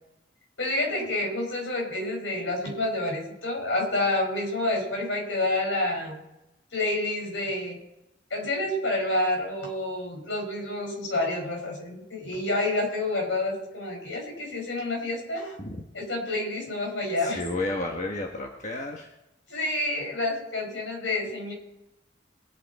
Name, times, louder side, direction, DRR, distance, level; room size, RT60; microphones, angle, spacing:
voice 1, 0.6-6.2 6.7-7.8 8.3-15.6 15.9-17.5 19.5-21.5, left 2 dB, 80° left, 1 dB, 5.0 m, -28 dB
voice 2, 17.2-19.1, left 2 dB, 40° left, 1 dB, 1.3 m, -32 dB
21.5 x 8.5 x 4.2 m, 0.92 s
head